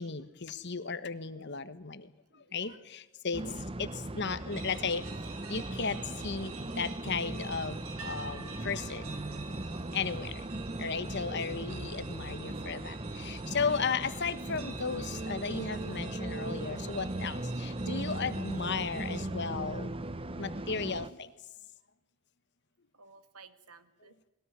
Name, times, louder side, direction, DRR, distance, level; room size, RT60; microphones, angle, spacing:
voice 1, 0.0-2.1 2.5-3.5 3.8-5.0 5.5-9.2 9.9-10.5 10.8-19.9 20.4-21.3, left 5 dB, 50° left, 13 dB, 1.3 m, -35 dB
voice 2, 2.3-2.8 3.4-3.6 11.1-11.4 13.4-13.8 22.9-24.2, right 5 dB, 90° right, 11 dB, 1.8 m, -57 dB
sound 1, 3.3-21.1, right 1 dB, 25° right, 0.7 m, -38 dB
sound 2, 4.5-19.2, right 5 dB, 70° right, 2.4 m, -49 dB
21.0 x 18.0 x 9.5 m, 1.0 s
head